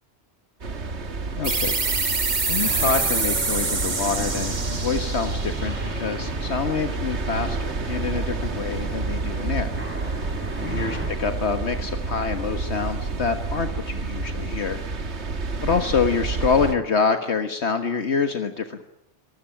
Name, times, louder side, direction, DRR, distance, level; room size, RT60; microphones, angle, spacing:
sound 1, 0.6-16.8, right 3 dB, 75° right, 2.0 m, -29 dB
voice 1, 1.3-9.7 10.0-10.2 10.6-14.8 15.6-18.8, left 5 dB, 70° left, 8 dB, 1.7 m, -26 dB
sound 2, 1.4-6.7, right 4 dB, 40° right, 1.6 m, -26 dB
sound 3, 2.6-11.1, equal, 10° right, 5.7 m, -37 dB
25.5 x 20.5 x 8.9 m, 0.79 s
omnidirectional pair, 1.2 m